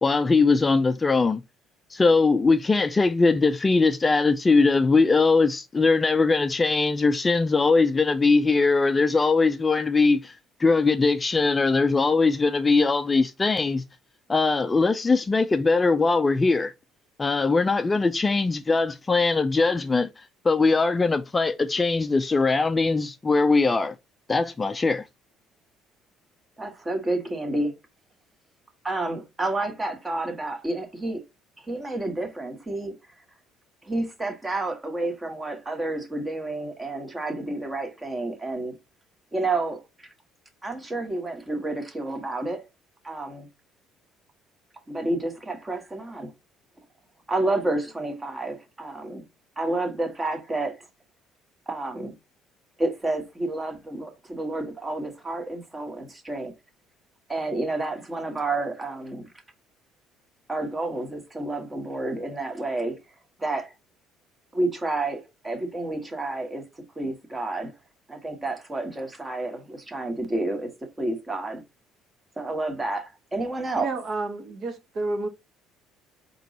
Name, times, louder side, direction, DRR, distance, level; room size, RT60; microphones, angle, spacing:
voice 1, 0.0-1.4 1.9-10.3 10.6-13.8 14.3-16.7 17.2-20.1 20.4-23.9 24.3-25.0, left 3 dB, 20° left, 0.4 m, -21 dB
voice 2, 26.6-27.7 28.8-31.2 31.6-32.9 33.8-38.7 39.3-40.1 40.6-42.6 43.0-43.5 44.9-46.3 47.3-49.2 49.6-50.8 51.7-52.1 52.8-56.5 57.3-59.3 60.5-63.0 63.4-63.7 64.5-66.6 67.0-67.7 68.1-70.7 71.0-71.6 72.4-73.9, right 2 dB, 20° right, 1.2 m, -30 dB
voice 3, 73.8-75.3, right 2 dB, 50° right, 1.1 m, -30 dB
4.4 x 3.0 x 3.8 m
cardioid pair, 115°, 0 cm